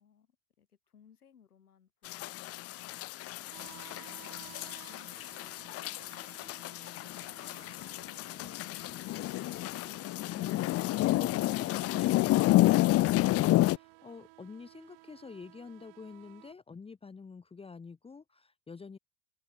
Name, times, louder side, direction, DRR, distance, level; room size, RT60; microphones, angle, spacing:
voice 1, 0.0-9.3, left 8 dB, 80° left, 7.8 m, -64 dB
sound 1, 2.1-13.8, left 17 dB, 30° left, 0.8 m, -30 dB
sound 2, 3.5-16.5, right 39 dB, 50° right, 3.2 m, -56 dB
voice 2, 10.2-19.0, left 5 dB, 15° left, 1.3 m, -47 dB
open air
hypercardioid pair, 90°, 44 cm